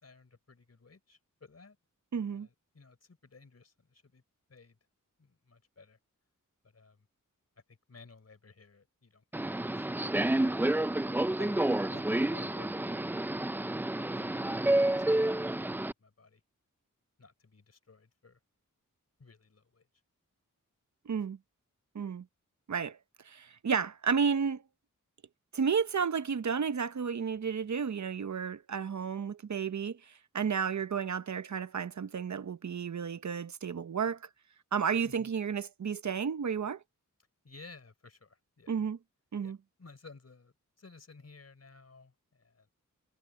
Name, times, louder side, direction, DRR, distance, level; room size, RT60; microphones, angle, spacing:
voice 1, 0.0-1.8 2.2-4.2 4.5-4.8 5.2-6.0 6.6-7.1 7.7-9.9 11.0-13.2 14.0-15.3 15.6-16.4 17.2-18.4 19.2-19.9 35.0-35.3 37.4-38.8 39.4-42.7, left 4 dB, 50° left, 4.0 m, -56 dB
voice 2, 2.1-2.5 21.1-21.4 21.9-22.2 22.7-23.0 23.2-24.6 25.5-34.3 34.7-36.8 38.7-39.0 39.3-39.6, right 6 dB, 60° right, 0.8 m, -32 dB
Subway metro underground, 9.3-15.9, right 1 dB, 5° right, 0.3 m, -29 dB
wide cardioid pair, 90°, 32 cm